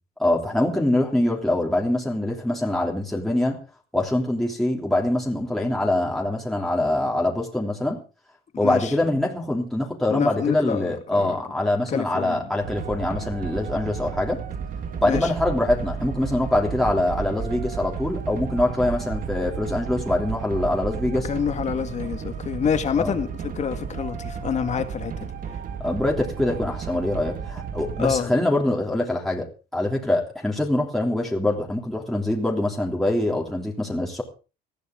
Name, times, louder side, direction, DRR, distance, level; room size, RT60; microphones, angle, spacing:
voice 1, 0.2-3.6 3.9-8.0 8.6-14.4 15.0-21.3 23.0-23.1 25.8-34.2, left 1 dB, ahead, 3.2 m, -24 dB
voice 2, 8.6-8.9 10.1-11.4 11.9-12.5 15.0-15.3 21.1-25.3 28.0-28.3, left 7 dB, 40° left, 2.0 m, -27 dB
sound 1, 12.6-28.2, right 6 dB, 50° right, 1.9 m, -33 dB
20.0 x 13.5 x 3.8 m
cardioid pair, 125°, 19 cm